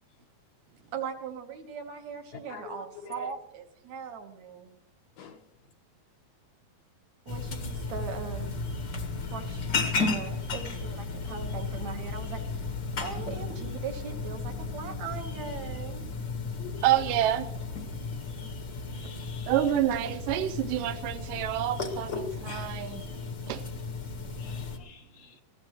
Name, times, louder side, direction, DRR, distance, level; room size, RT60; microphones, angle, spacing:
voice 1, 0.9-4.7 7.3-8.5 9.3-9.7 10.0-12.4 13.0-16.0, right 6 dB, 60° right, 2.1 m, -39 dB
voice 2, 2.5-3.3 5.2-5.4 16.6-16.9 18.9-19.6 24.4-25.4, left 7 dB, 75° left, 2.4 m, -46 dB
sound 1, 7.3-24.8, left 4 dB, 50° left, 1.3 m, -34 dB
voice 3, 16.8-17.5 19.5-23.0 23.5-23.6, right 12 dB, 80° right, 2.1 m, -28 dB
21.5 x 15.5 x 3.1 m
omnidirectional pair, 4.4 m